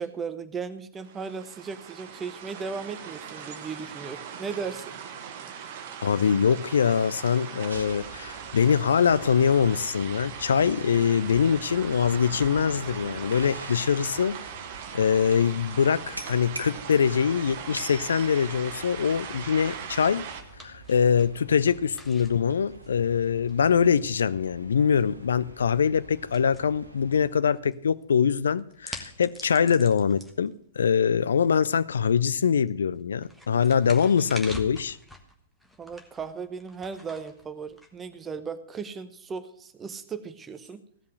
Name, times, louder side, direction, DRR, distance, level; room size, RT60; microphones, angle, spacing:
voice 1, 0.0-4.9 35.8-40.8, right 5 dB, 15° right, 0.8 m, -36 dB
sound 1, 1.0-20.4, right 7 dB, 40° right, 1.3 m, -40 dB
voice 2, 6.0-14.5 14.9-20.3 20.6-35.0, left 7 dB, 60° left, 0.5 m, -23 dB
sound 2, 7.7-27.3, right 2 dB, 80° right, 1.3 m, -46 dB
sound 3, 20.0-38.5, left 1 dB, ahead, 1.4 m, -48 dB
15.5 x 5.5 x 7.8 m
figure-of-eight pair, 110°, 0 cm